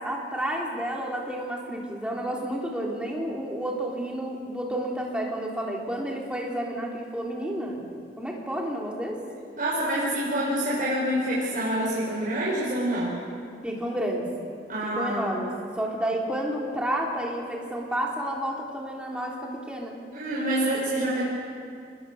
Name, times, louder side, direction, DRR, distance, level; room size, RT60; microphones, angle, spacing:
voice 1, 0.0-7.9 8.2-9.2 13.6-14.3 14.8-20.0, right 1 dB, 5° right, -2 dB, 3.6 m, -30 dB
voice 2, 9.6-13.2 14.7-15.3 20.1-21.2, right 1 dB, 50° right, -7 dB, 5.9 m, -26 dB
27.5 x 21.5 x 6.6 m, 2.3 s
head